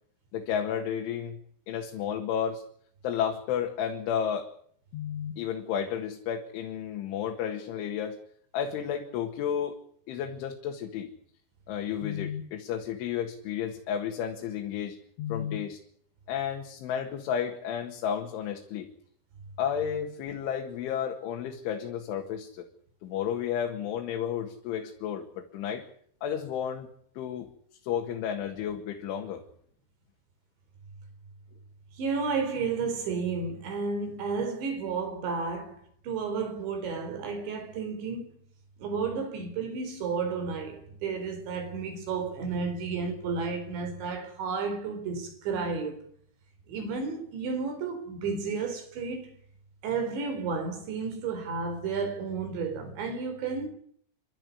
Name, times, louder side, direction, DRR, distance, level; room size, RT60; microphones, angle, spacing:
voice 1, 0.3-1.4 1.7-2.6 3.0-4.5 4.9-8.2 8.5-9.8 10.1-11.1 11.7-15.8 16.3-18.9 19.6-22.7 23.0-25.9 26.2-26.9 27.2-27.5 27.8-29.4, left 8 dB, 85° left, 4.3 m, -32 dB
voice 2, 32.0-38.3 38.8-46.0 46.7-49.3 49.8-53.7, right 5 dB, 70° right, 6.2 m, -32 dB
29.0 x 12.5 x 9.8 m
omnidirectional pair, 5.4 m